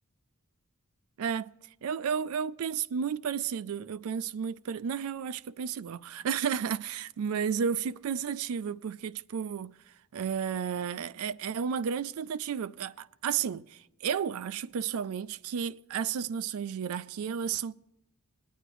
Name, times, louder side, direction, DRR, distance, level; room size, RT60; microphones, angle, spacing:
voice 1, 1.2-1.5 1.8-9.7 10.1-17.7, right 7 dB, 70° right, 0.4 m, -32 dB
21.0 x 9.2 x 3.0 m
head